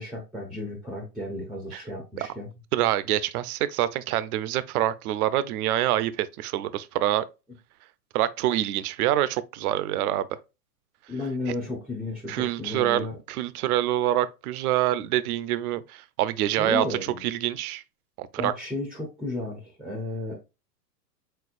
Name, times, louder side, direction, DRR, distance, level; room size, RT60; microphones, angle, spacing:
voice 1, 0.0-2.5 11.1-13.2 16.6-17.2 18.4-20.4, left 2 dB, ahead, 0.4 m, -33 dB
voice 2, 2.7-7.3 8.1-10.3 12.3-17.8 18.2-18.5, right 13 dB, 65° right, 0.6 m, -26 dB
4.4 x 4.1 x 2.4 m
hypercardioid pair, 130°, 47 cm